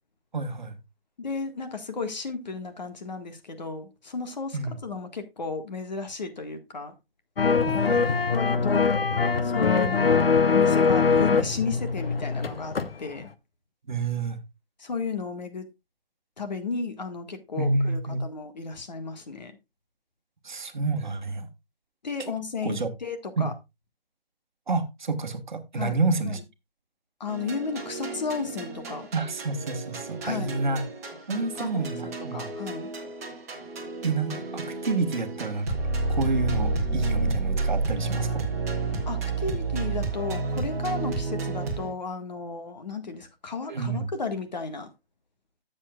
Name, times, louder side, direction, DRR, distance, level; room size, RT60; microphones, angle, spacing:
voice 1, 0.3-0.8 4.5-4.8 7.6-8.1 13.9-14.4 17.6-18.2 20.4-21.5 22.6-22.9 23.4-23.5 24.7-26.4 29.1-30.8 31.3-32.5 34.0-35.8 36.1-38.5 43.7-44.1, right 3 dB, 50° right, 1.5 m, -29 dB
voice 2, 1.2-6.9 8.3-8.9 9.4-10.2 10.5-12.7 13.0-13.3 14.8-15.7 16.4-19.6 22.0-23.5 25.7-26.0 26.2-26.4 27.2-29.1 30.2-30.6 31.5-32.9 39.1-44.9, left 4 dB, 45° left, 1.6 m, -33 dB
sound 1, 7.4-12.9 13.2-13.3, left 5 dB, 70° left, 1.1 m, -22 dB
sound 2, 27.3-41.9, right 3 dB, 15° right, 1.6 m, -30 dB
13.0 x 7.5 x 2.3 m
hypercardioid pair, 175°, 30 cm